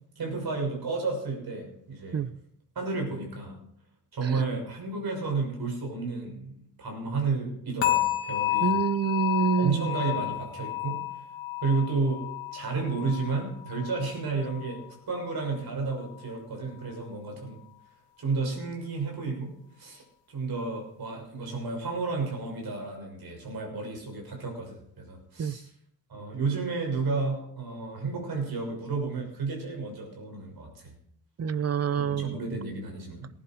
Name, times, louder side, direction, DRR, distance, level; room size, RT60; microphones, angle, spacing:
voice 1, 0.2-2.2 2.7-3.6 4.1-8.8 9.6-11.2 11.6-17.6 18.2-20.0 20.3-25.7 26.1-30.9 31.9-33.3, right 4 dB, 55° right, 6.4 m, -32 dB
sound 1, 7.8-14.9 15.2-15.6 16.1-16.2, left 15 dB, 85° left, 2.0 m, -31 dB
voice 2, 8.6-9.9 25.4-25.6 31.4-32.4, right 7 dB, 35° right, 0.6 m, -26 dB
19.0 x 11.0 x 4.7 m
wide cardioid pair, 135°, 43 cm